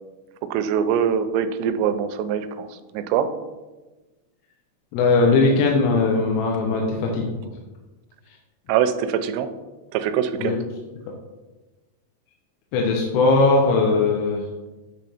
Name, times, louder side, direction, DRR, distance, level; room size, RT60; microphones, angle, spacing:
voice 1, 0.4-2.7 2.9-3.3 8.7-9.5 9.9-10.6, right 8 dB, 85° right, 10 dB, 2.7 m, -23 dB
voice 2, 4.9-7.3 10.4-10.5 12.7-14.4, left 3 dB, 80° left, -1 dB, 2.9 m, -19 dB
9.4 x 3.3 x 4.2 m, 1.2 s
omnidirectional pair, 5.0 m